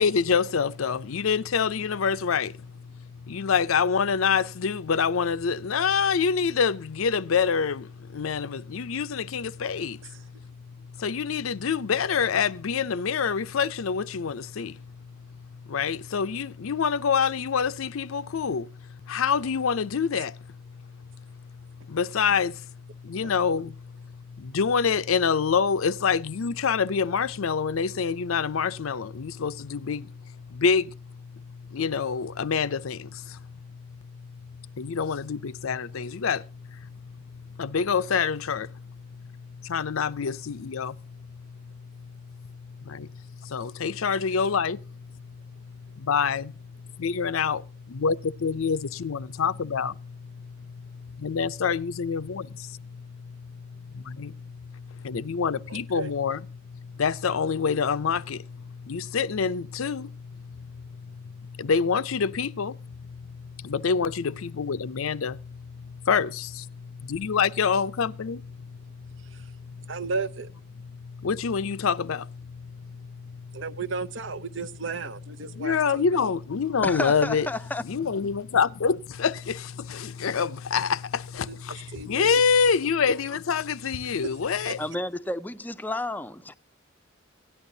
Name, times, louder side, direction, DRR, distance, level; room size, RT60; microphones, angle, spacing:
voice 1, 0.0-69.9 70.9-73.6 75.5-77.5 77.8-84.8, left 6 dB, 90° left, 0.5 m, -27 dB
voice 2, 55.7-56.1 69.2-69.5 69.8-70.5 73.5-76.3 81.5-81.6 81.9-82.4 84.6-84.7, right 4 dB, 65° right, 0.7 m, -34 dB
voice 3, 76.8-77.8 84.8-86.5, left 1 dB, 10° left, 0.4 m, -31 dB
17.0 x 11.0 x 2.7 m
head